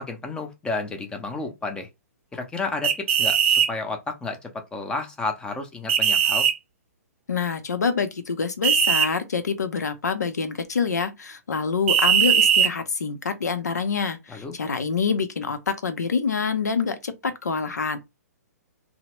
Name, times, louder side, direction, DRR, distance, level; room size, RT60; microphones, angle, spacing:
voice 1, 0.0-1.9 2.3-6.5 14.3-14.5, left 3 dB, 10° left, 0.6 m, -31 dB
sound 1, 2.8-3.7 5.9-6.5 8.6-9.1 11.9-12.7, right 8 dB, 45° right, 0.5 m, -19 dB
voice 2, 7.3-18.0, left 5 dB, 80° left, 0.7 m, -26 dB
2.9 x 2.1 x 2.9 m
figure-of-eight pair, 125°, 9 cm